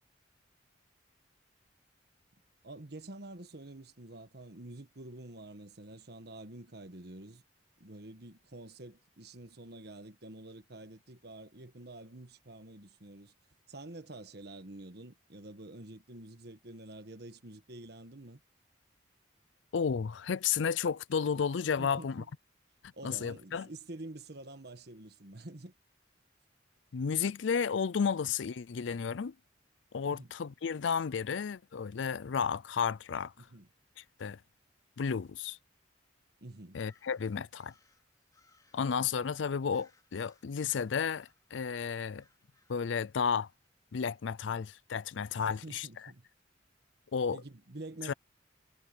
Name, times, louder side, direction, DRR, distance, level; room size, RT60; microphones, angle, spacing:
voice 1, 2.6-7.4 7.8-13.3 13.7-18.4 21.8-22.3 22.9-25.7 30.0-30.3 33.4-33.7 36.4-36.8 45.4-46.2 47.3-48.1, right 2 dB, 60° right, 1.5 m, -48 dB
voice 2, 19.7-22.2 23.0-23.7 26.9-29.3 29.9-33.3 34.2-34.4 35.0-35.6 36.7-37.7 38.7-42.2 42.7-43.5 43.9-45.9 47.1-47.4 48.1-48.2, left 6 dB, 80° left, 0.5 m, -32 dB
sound 1, 36.7-39.0 39.7-43.7, left 3 dB, 20° left, 3.7 m, -69 dB
head